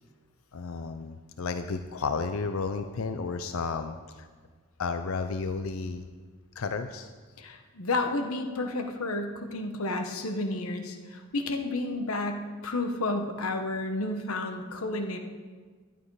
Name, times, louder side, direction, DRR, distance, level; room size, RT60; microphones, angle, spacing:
voice 1, 0.5-4.3 4.8-6.1 6.6-7.1, left 4 dB, 70° left, 9 dB, 0.5 m, -32 dB
voice 2, 7.4-15.2, left 2 dB, 90° left, 5 dB, 1.2 m, -31 dB
12.0 x 11.0 x 4.8 m, 1.5 s
head